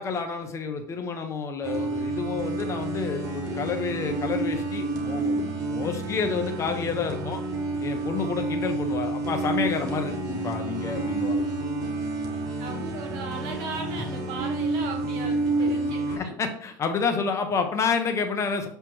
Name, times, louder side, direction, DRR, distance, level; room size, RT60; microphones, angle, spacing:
voice 1, 0.0-7.4 7.8-11.4 16.2-18.7, left 5 dB, 35° left, 5 dB, 1.0 m, -29 dB
sound 1, 1.6-16.2, right 2 dB, 45° right, 1.8 m, -29 dB
voice 2, 12.5-16.4, right 3 dB, 65° right, 3 dB, 1.6 m, -36 dB
7.3 x 3.4 x 4.7 m, 0.62 s
supercardioid pair, 95°, 9 cm